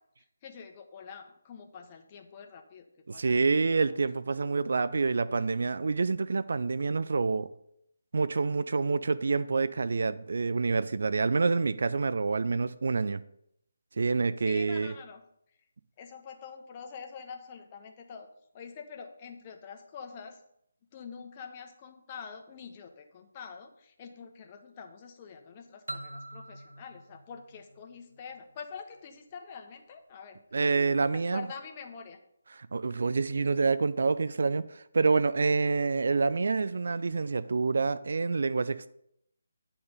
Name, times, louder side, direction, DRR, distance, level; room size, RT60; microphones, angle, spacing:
voice 1, 0.4-4.0 14.4-15.2 16.0-18.3 18.5-20.4 20.9-30.4 31.1-32.2, left 6 dB, 25° left, 4 dB, 0.8 m, -46 dB
voice 2, 3.1-7.5 8.1-13.2 14.0-14.9 30.5-31.5 32.5-38.9, right 4 dB, 55° right, 15 dB, 0.3 m, -27 dB
sound 1, 25.9-28.6, right 1 dB, 85° right, 0.7 m, -44 dB
9.5 x 3.5 x 5.3 m, 0.74 s
figure-of-eight pair, 150°, 0 cm